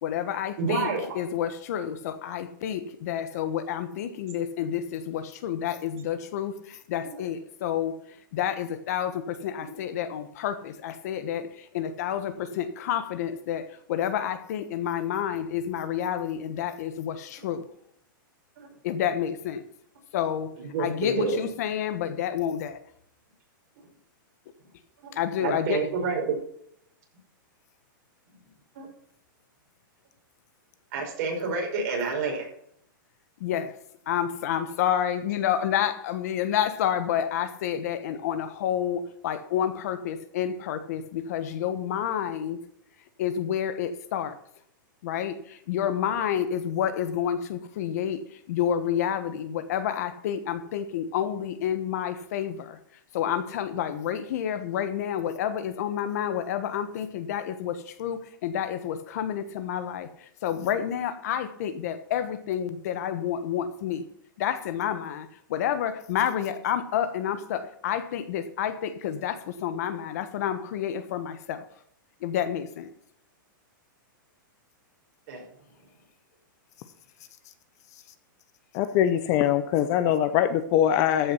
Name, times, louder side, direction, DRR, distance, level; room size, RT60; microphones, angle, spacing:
voice 1, 0.0-7.9 8.3-17.6 18.8-19.6 20.1-20.5 20.8-22.8 25.1-25.8 33.4-33.7 34.1-42.6 43.2-44.4 45.0-52.8 53.1-60.1 60.4-64.0 64.4-71.7 72.2-72.9, left 9 dB, 50° left, 11 dB, 1.2 m, -29 dB
voice 2, 0.6-1.2 7.0-7.1 18.6-18.7 20.6-21.4 25.0-25.1 25.4-26.4 28.8-28.9 30.9-32.5 75.3-75.4, right 4 dB, 45° right, 0 dB, 5.4 m, -28 dB
voice 3, 78.7-81.3, left 10 dB, 30° left, 11 dB, 0.7 m, -22 dB
14.5 x 7.0 x 5.8 m, 0.69 s
supercardioid pair, 165°, 11 cm